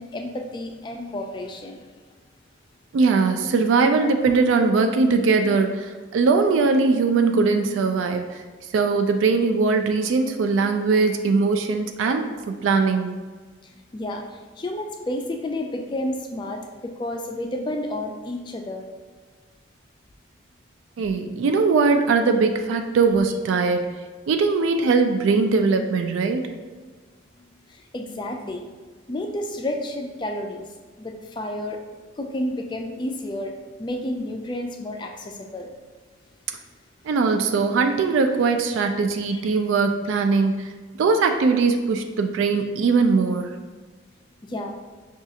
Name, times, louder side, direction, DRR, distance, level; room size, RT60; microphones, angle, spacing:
voice 1, 0.0-1.9 13.7-18.9 27.7-28.7 29.1-30.7 31.0-31.8 32.2-35.7 44.4-44.7, left 1 dB, 25° left, 3 dB, 0.3 m, -31 dB
voice 2, 2.9-8.4 8.7-13.2 21.0-23.9 24.3-26.5 37.0-40.7 41.0-43.6, right 4 dB, 85° right, 5 dB, 0.3 m, -20 dB
5.8 x 2.4 x 2.7 m, 1.4 s
head